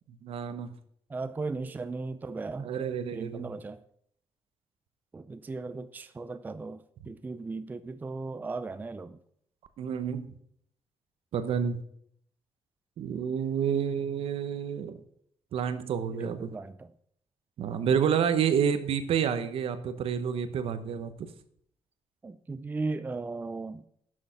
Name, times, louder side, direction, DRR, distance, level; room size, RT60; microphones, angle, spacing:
voice 1, 0.2-0.7 2.6-3.5 9.8-10.3 11.3-11.8 13.0-15.0 15.5-16.5 17.6-21.3, right 7 dB, 65° right, 1.0 m, -29 dB
voice 2, 1.1-2.7 3.1-3.8 5.1-9.2 16.1-16.9 22.2-23.9, right 3 dB, 15° right, 0.4 m, -37 dB
11.0 x 6.6 x 5.8 m
cardioid pair, 135°, 10 cm